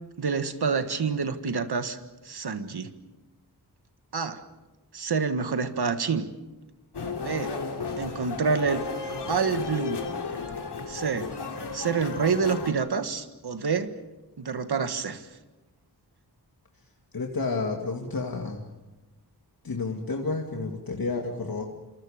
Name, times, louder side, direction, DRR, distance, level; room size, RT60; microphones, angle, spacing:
voice 1, 0.2-2.0 2.2-2.9 4.1-4.4 4.9-6.3 7.2-7.6 8.0-8.8 9.3-10.0 10.9-11.3 11.7-13.9 14.4-15.2, right 5 dB, 70° right, 9 dB, 1.7 m, -27 dB
sound 1, 6.9-12.7, left 4 dB, 80° left, 2.9 m, -33 dB
voice 2, 17.1-18.7 19.6-21.7, left 3 dB, 60° left, 1 dB, 2.4 m, -30 dB
27.5 x 27.5 x 5.2 m, 1.1 s
wide cardioid pair, 85°, 40 cm